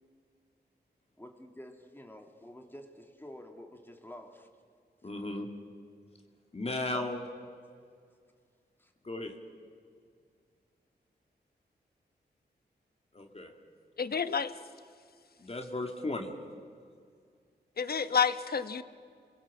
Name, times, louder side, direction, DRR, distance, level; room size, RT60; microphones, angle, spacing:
voice 1, 1.2-4.5 6.9-7.0 8.8-8.9, left 1 dB, 10° left, 3 dB, 2.7 m, -49 dB
voice 2, 5.0-5.5 6.5-7.2 9.0-9.3 13.1-13.5 15.4-16.3, left 2 dB, 35° left, 3 dB, 2.4 m, -35 dB
voice 3, 14.0-14.5 17.8-18.8, left 6 dB, 60° left, 11 dB, 1.2 m, -29 dB
27.0 x 21.5 x 7.4 m, 2.1 s
cardioid pair, 70°, 18 cm